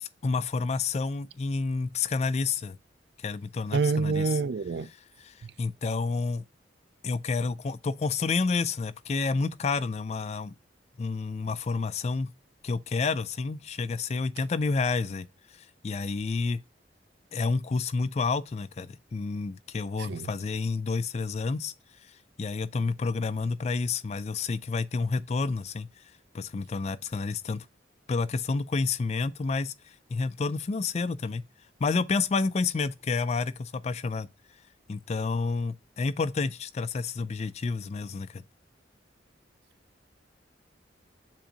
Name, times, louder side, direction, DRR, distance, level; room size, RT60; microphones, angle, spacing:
voice 1, 0.0-2.8 3.2-4.3 5.2-6.4 7.0-10.5 11.0-12.3 12.6-16.6 17.3-21.7 22.1-27.7 28.1-31.4 31.8-34.3 34.9-38.4, left 4 dB, 35° left, 0.3 m, -30 dB
voice 2, 3.7-4.9 5.4-5.5 20.0-20.3, right 4 dB, 65° right, 0.4 m, -27 dB
7.4 x 2.7 x 5.0 m
head